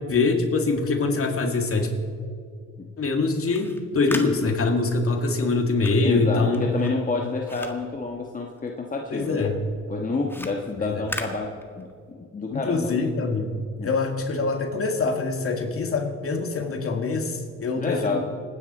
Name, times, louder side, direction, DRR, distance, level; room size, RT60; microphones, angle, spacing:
voice 1, 0.1-1.9 3.0-6.6 9.1-9.6 10.8-11.0 12.5-18.2, left 3 dB, 50° left, 3 dB, 2.3 m, -24 dB
sound 1, 3.3-8.9 9.2-12.1, left 1 dB, 5° left, 1.6 m, -39 dB
voice 2, 6.0-9.5 9.9-13.1 13.8-13.9 17.7-18.2, left 3 dB, 25° left, 1 dB, 1.3 m, -29 dB
27.5 x 9.9 x 4.4 m, 2.3 s
cardioid pair, 90°, 30 cm